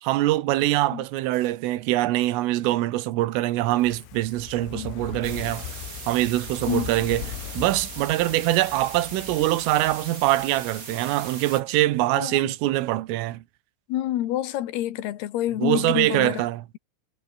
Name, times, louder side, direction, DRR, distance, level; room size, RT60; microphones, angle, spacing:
voice 1, 0.0-5.7 6.1-7.2 7.6-13.4 15.6-16.6, right 16 dB, 80° right, 4.0 m, -23 dB
Fire, 3.6-11.0 11.3-11.4, left 12 dB, 80° left, 4.8 m, -40 dB
sound 1, 5.2-11.6, right 4 dB, 35° right, 1.5 m, -40 dB
voice 2, 12.1-12.5 13.9-16.5, left 13 dB, 65° left, 2.9 m, -28 dB
omnidirectional pair, 5.9 m